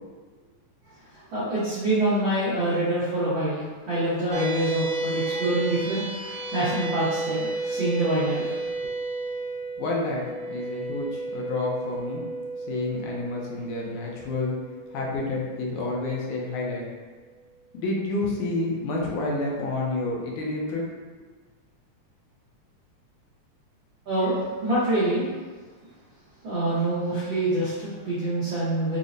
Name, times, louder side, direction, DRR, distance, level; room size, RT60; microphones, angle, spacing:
voice 1, 1.3-8.6 24.1-25.3 26.4-29.0, right 1 dB, 90° right, -11 dB, 1.0 m, -26 dB
sound 1, 4.3-16.9, right 2 dB, 70° right, 1.7 m, -33 dB
voice 2, 9.8-12.2 12.7-14.5 14.9-16.8 17.7-20.8, left 2 dB, 80° left, -3 dB, 2.0 m, -29 dB
5.5 x 2.0 x 2.5 m, 1.4 s
omnidirectional pair, 3.5 m